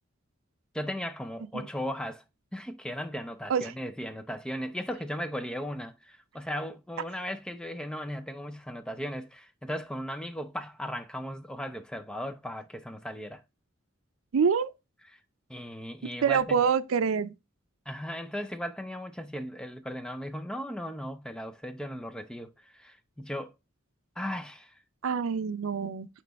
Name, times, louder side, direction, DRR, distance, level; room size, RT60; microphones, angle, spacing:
voice 1, 0.7-2.2 2.5-13.4 15.5-16.6 17.9-23.5 24.2-24.8, equal, 5° left, 0.4 m, -37 dB
voice 2, 14.3-14.7 16.2-17.3 25.0-26.1, right 6 dB, 90° right, 0.5 m, -26 dB
9.2 x 3.1 x 3.4 m
head